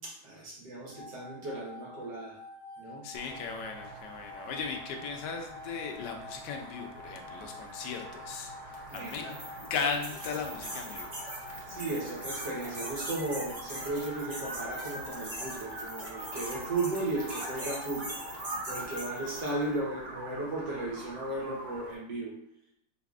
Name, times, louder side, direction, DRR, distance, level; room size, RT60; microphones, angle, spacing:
voice 1, 0.0-2.4 2.8-3.0 8.9-9.3 11.7-18.2 18.7-22.3, right 2 dB, 75° right, -3 dB, 1.9 m, -35 dB
sound 1, 0.9-18.9, left 2 dB, 45° left, 0.5 m, -49 dB
voice 2, 3.0-9.4 9.7-11.2, left 5 dB, 80° left, 4 dB, 1.3 m, -37 dB
sound 2, 3.1-21.9, right 2 dB, 55° right, 0.9 m, -45 dB
sound 3, 8.7-19.7, right 1 dB, 30° right, 0.7 m, -42 dB
4.1 x 4.1 x 2.4 m, 0.78 s
omnidirectional pair, 1.9 m